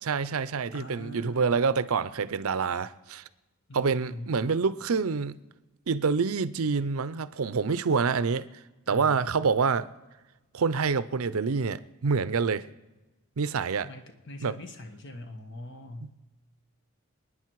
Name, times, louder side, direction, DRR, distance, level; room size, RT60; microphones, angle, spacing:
voice 1, 0.0-3.2 3.7-5.4 5.9-8.5 8.9-9.9 10.5-12.7 13.4-13.9 14.4-14.6, right 5 dB, 80° right, 0.6 m, -27 dB
voice 2, 0.7-1.6 3.7-4.3 8.9-9.5 13.8-16.1, left 1 dB, 55° left, 1.5 m, -42 dB
27.5 x 9.7 x 4.7 m
head